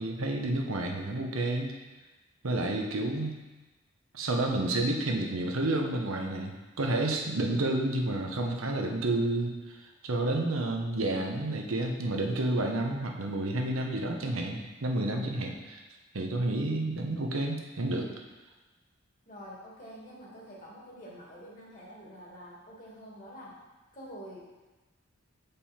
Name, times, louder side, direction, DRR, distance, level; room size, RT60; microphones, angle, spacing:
voice 1, 0.0-1.7 2.4-3.4 4.1-15.8 16.1-18.1, right 2 dB, 85° right, 2 dB, 0.9 m, -30 dB
voice 2, 19.3-23.6 23.9-24.4, equal, 40° left, -5 dB, 2.0 m, -47 dB
7.5 x 5.2 x 4.3 m, 1.2 s
head